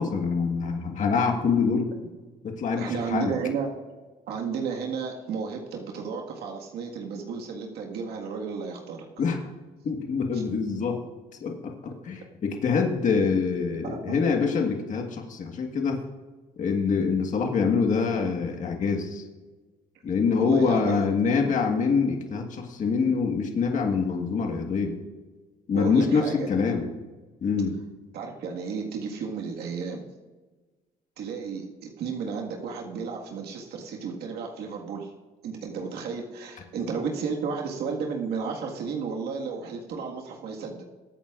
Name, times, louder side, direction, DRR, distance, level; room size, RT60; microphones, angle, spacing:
voice 1, 0.0-1.9 2.4-3.3 9.2-9.4 9.8-11.1 11.4-16.0 16.6-19.2 20.0-24.9 25.7-26.9 27.4-27.8, left 5 dB, 50° left, 2 dB, 1.6 m, -25 dB
voice 2, 2.8-3.7 4.3-9.0 10.3-10.4 13.8-14.3 20.4-21.0 21.4-21.5 25.7-26.5 28.1-30.1 31.2-35.1 35.4-40.8, right 5 dB, 75° right, 0 dB, 1.8 m, -33 dB
21.5 x 9.0 x 2.5 m, 1.3 s
cardioid pair, 110°, 17 cm